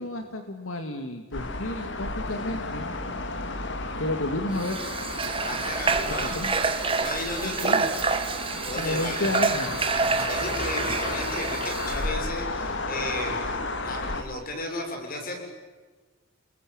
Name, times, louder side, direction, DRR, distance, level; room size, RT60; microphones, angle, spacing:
voice 1, 0.0-2.9 4.0-4.8 6.2-6.6 7.4-7.9 8.8-9.8, left 1 dB, 85° left, 6 dB, 2.2 m, -31 dB
sound 1, 1.3-14.2, left 2 dB, 60° left, 2.3 m, -33 dB
Water / Water tap faucet, 4.5-12.1, right 4 dB, 25° right, 1.8 m, -28 dB
Coin (dropping), 5.2-6.1 6.4-6.5 7.5-7.7 8.0-9.6 10.1-10.5, right 10 dB, 90° right, 5.3 m, -46 dB
voice 2, 5.4-6.4 7.0-7.8 8.2-9.3 10.2-15.4, left 1 dB, 45° left, 3 dB, 6.7 m, -34 dB
29.0 x 21.5 x 8.8 m, 1.3 s
head